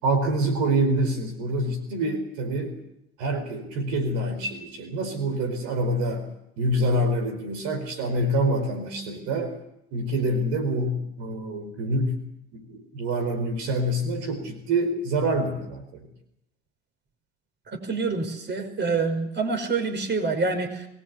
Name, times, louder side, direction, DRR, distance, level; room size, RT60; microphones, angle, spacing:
voice 1, 0.0-2.8 3.2-6.3 6.6-9.6 9.9-12.1 12.5-16.0, right 1 dB, 65° right, 7 dB, 4.9 m, -26 dB
voice 2, 17.7-20.9, right 4 dB, 35° right, 7 dB, 5.6 m, -27 dB
23.0 x 20.0 x 8.4 m, 0.78 s
hypercardioid pair, 75°, 32 cm